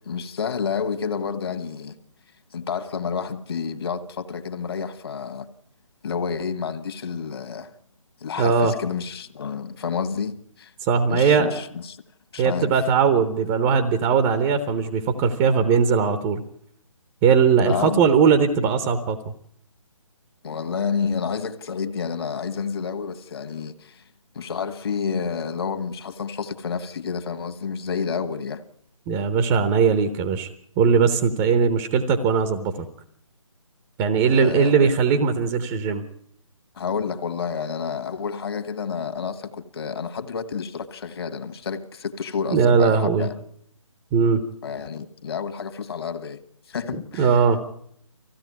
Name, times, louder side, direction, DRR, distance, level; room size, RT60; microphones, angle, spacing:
voice 1, 0.0-2.0 2.5-5.5 6.0-7.7 8.2-10.7 11.1-12.0 12.3-12.7 17.6-18.0 20.4-24.0 24.3-28.6 34.3-34.9 36.7-43.3 44.6-46.4 46.7-47.4, left 6 dB, 50° left, 1.7 m, -29 dB
voice 2, 8.4-8.7 10.8-11.5 12.4-16.4 17.2-19.2 29.1-30.5 30.8-32.9 34.0-36.0 42.5-43.3 44.1-44.4 46.9-47.6, right 6 dB, 15° right, 0.8 m, -19 dB
19.5 x 15.5 x 9.6 m
figure-of-eight pair, 150°, 17 cm